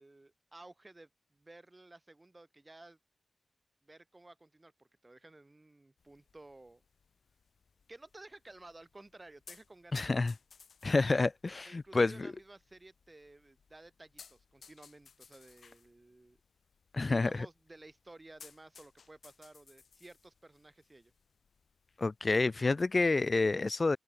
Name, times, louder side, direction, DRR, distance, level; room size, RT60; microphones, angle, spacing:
voice 1, 0.0-3.0 3.8-6.8 7.9-10.2 11.6-16.4 17.0-21.1, right 2 dB, 25° right, 4.0 m, -55 dB
sound 1, 6.0-23.4, left 6 dB, 75° left, 6.1 m, -62 dB
voice 2, 9.9-10.3 10.8-12.3 16.9-17.5 22.0-24.0, left 3 dB, 40° left, 0.4 m, -29 dB
open air
wide cardioid pair, 75°, 0 cm